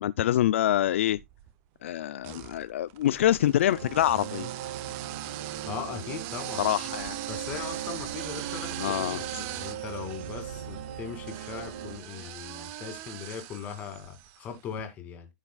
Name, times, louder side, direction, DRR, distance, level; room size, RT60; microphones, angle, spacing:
voice 1, 0.0-1.2 1.8-4.5 6.6-7.2 8.8-9.4, left 12 dB, 55° left, 0.4 m, -26 dB
sound 1, 0.8-1.5 2.2-14.5, right 15 dB, 25° right, 0.6 m, -41 dB
sound 2, 3.6-12.0, right 9 dB, 50° right, 1.7 m, -39 dB
voice 2, 5.7-6.7 7.3-15.3, left 7 dB, 20° left, 2.3 m, -39 dB
14.5 x 5.7 x 2.3 m
hypercardioid pair, 165°, 8 cm